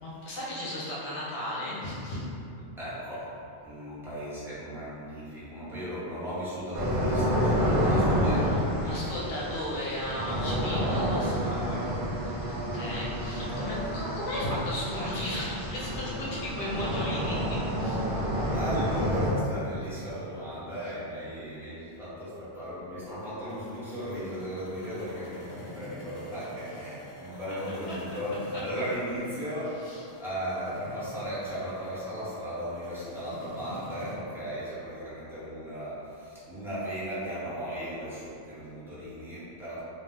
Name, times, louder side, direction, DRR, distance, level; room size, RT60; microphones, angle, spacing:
voice 1, 0.0-2.3 8.0-11.7 12.6-18.1 27.5-27.6 28.5-28.6 29.8-30.0, left 1 dB, 75° left, -7 dB, 0.9 m, -35 dB
voice 2, 2.8-3.4 3.6-9.4 10.7-11.0 11.5-11.9 18.5-39.8, equal, ahead, -12 dB, 0.7 m, -36 dB
sound 1, 6.7-19.3, equal, 45° right, 0.8 m, -29 dB
sound 2, 23.5-34.2, equal, 45° left, 0.5 m, -46 dB
2.5 x 2.0 x 3.4 m, 2.7 s
omnidirectional pair, 1.1 m